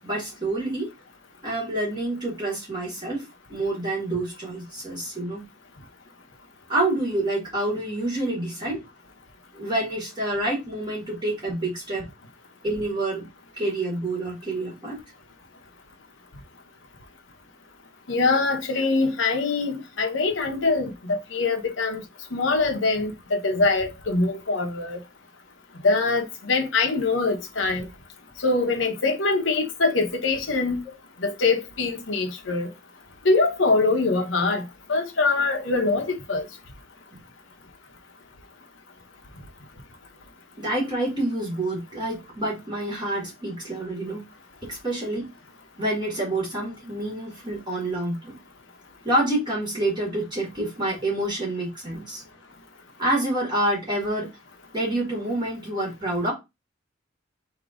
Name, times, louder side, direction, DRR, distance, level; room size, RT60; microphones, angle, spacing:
voice 1, 0.0-0.9 1.4-5.4 6.7-8.8 9.5-12.1 12.6-13.3 13.6-15.0 37.1-37.2 40.6-44.3 44.6-45.3 45.8-48.4 49.0-52.2 53.0-54.3 54.7-56.3, right 1 dB, 25° right, 1.9 m, -27 dB
voice 2, 18.1-22.0 22.3-25.0 25.8-27.9 28.4-30.8 31.2-32.7 33.2-34.6 34.9-36.4, left 3 dB, 70° left, 1.0 m, -23 dB
3.7 x 2.9 x 4.9 m
head